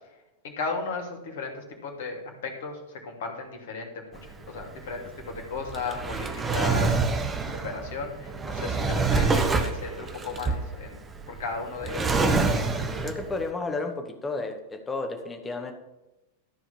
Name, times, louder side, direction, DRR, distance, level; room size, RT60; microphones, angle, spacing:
voice 1, 0.4-6.9 7.5-10.9 11.3-12.1, left 4 dB, 55° left, 1 dB, 2.6 m, -35 dB
Drawer open or close, 4.1-13.4, right 4 dB, 15° right, 1.2 m, -27 dB
voice 2, 13.0-15.7, left 3 dB, 15° left, 4 dB, 1.8 m, -32 dB
14.0 x 4.8 x 7.2 m, 1.0 s
figure-of-eight pair, 90°, 0 cm